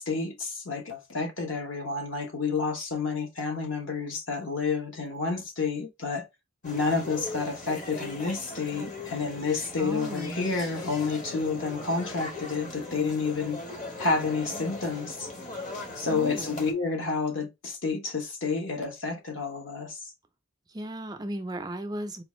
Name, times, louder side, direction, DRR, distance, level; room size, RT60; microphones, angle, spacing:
voice 1, 0.0-6.3 6.6-13.6 14.0-15.3 15.9-20.1, left 4 dB, 60° left, 1.1 m, -30 dB
sound 1, 6.6-16.7, left 2 dB, 35° left, 1.0 m, -39 dB
voice 2, 9.8-10.4 16.1-16.7 20.7-22.2, right 1 dB, 20° right, 0.3 m, -36 dB
4.3 x 2.4 x 3.0 m
head